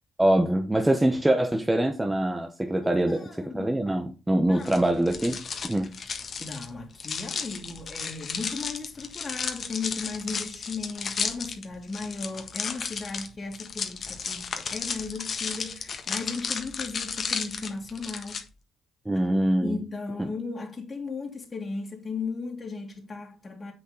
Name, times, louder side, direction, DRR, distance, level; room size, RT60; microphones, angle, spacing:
voice 1, 0.2-3.3 3.5-5.9 19.0-19.8, right 1 dB, 15° right, 1.2 m, -24 dB
voice 2, 2.8-3.8 4.4-4.8 6.1-18.4 19.6-23.7, left 4 dB, 35° left, 2.4 m, -36 dB
sound 1, 4.6-18.4, left 5 dB, 50° left, 1.5 m, -34 dB
7.8 x 6.4 x 4.1 m
supercardioid pair, 55°, 0 cm